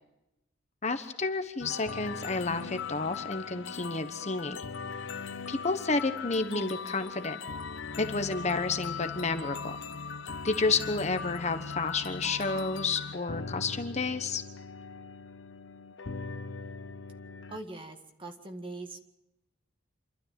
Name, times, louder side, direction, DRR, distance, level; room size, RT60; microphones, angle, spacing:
voice 1, 0.8-4.6 5.5-7.4 8.0-9.8 10.4-14.4, left 3 dB, 35° left, 8 dB, 1.1 m, -30 dB
sound 1, 1.6-17.6, left 5 dB, 80° left, 0.8 m, -39 dB
voice 2, 17.5-19.0, right 2 dB, 25° right, 5 dB, 1.9 m, -42 dB
28.0 x 12.5 x 7.6 m, 0.91 s
head